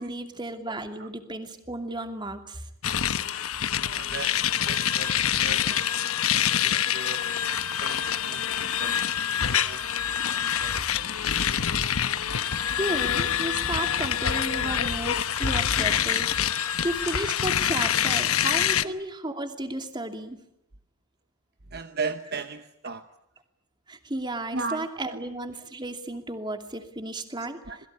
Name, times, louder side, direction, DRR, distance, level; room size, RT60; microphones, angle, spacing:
voice 1, 0.0-2.7 12.6-16.3 16.8-20.4 23.9-27.6, right 1 dB, 20° right, 6 dB, 2.7 m, -33 dB
sound 1, 2.8-18.8, left 9 dB, 75° left, 1.2 m, -26 dB
voice 2, 3.8-7.2 7.8-9.9 10.3-11.1 13.7-13.8 15.2-15.3 15.8-15.9 18.8-18.9 21.7-23.0 24.5-25.2 27.7-27.8, right 4 dB, 45° right, 9 dB, 1.1 m, -38 dB
27.5 x 21.5 x 9.7 m, 0.77 s
head